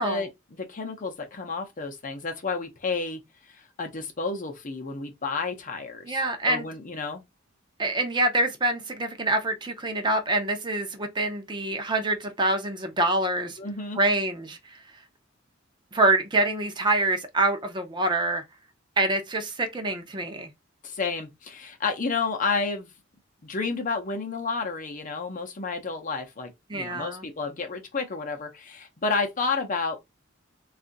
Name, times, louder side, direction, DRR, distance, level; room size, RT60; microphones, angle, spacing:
voice 1, 0.0-3.2 3.5-6.2 6.5-7.2 13.6-14.0 20.8-22.9 23.4-30.0, left 4 dB, 40° left, 0.7 m, -31 dB
voice 2, 6.1-6.7 7.8-13.6 14.0-14.6 15.9-18.4 19.0-20.5 26.7-27.2, right 2 dB, 25° right, 0.6 m, -25 dB
2.6 x 2.4 x 3.8 m
head